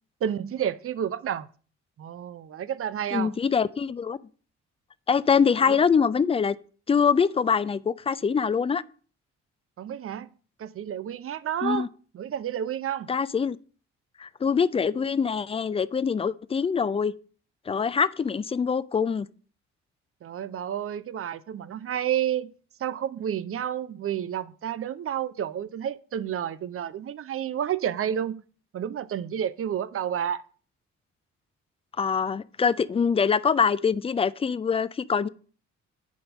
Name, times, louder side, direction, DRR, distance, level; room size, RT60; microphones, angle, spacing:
voice 1, 0.2-1.5 2.0-3.3 5.6-5.8 9.8-10.3 10.6-11.9 12.1-13.1 20.2-22.5 22.8-28.4 28.7-30.4 32.6-32.7, right 9 dB, 40° right, 0.7 m, -30 dB
voice 2, 3.1-4.2 5.1-6.6 6.9-8.8 11.6-11.9 13.1-13.6 14.2-17.1 17.7-19.3 32.0-35.3, left 6 dB, 15° left, 0.4 m, -24 dB
8.4 x 5.5 x 5.1 m
figure-of-eight pair, 40°, 36 cm